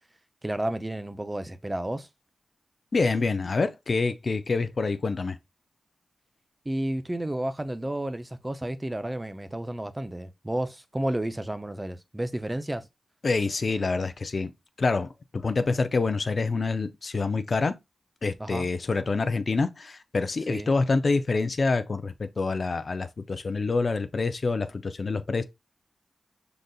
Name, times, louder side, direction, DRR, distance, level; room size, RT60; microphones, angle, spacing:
voice 1, 0.4-2.1 6.7-12.8 18.4-18.7 20.5-20.7, right 1 dB, 20° right, 0.5 m, -31 dB
voice 2, 2.9-5.4 13.2-14.5 14.8-17.8 18.2-25.4, left 3 dB, 55° left, 0.5 m, -26 dB
5.1 x 3.9 x 2.3 m
cardioid pair, 55°, 0 cm